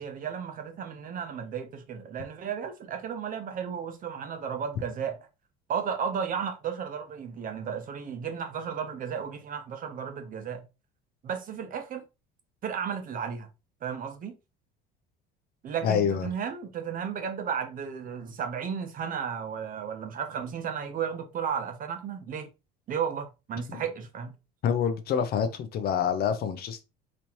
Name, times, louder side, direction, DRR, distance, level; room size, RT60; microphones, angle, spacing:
voice 1, 0.0-5.2 5.7-10.6 11.2-12.0 12.6-13.5 13.8-14.3 15.6-22.5 22.9-24.3, right 7 dB, 40° right, 0.9 m, -34 dB
voice 2, 15.8-16.3 23.7-23.8 24.6-26.8, left 7 dB, 50° left, 0.6 m, -27 dB
4.1 x 3.1 x 2.9 m
cardioid pair, 115°, 21 cm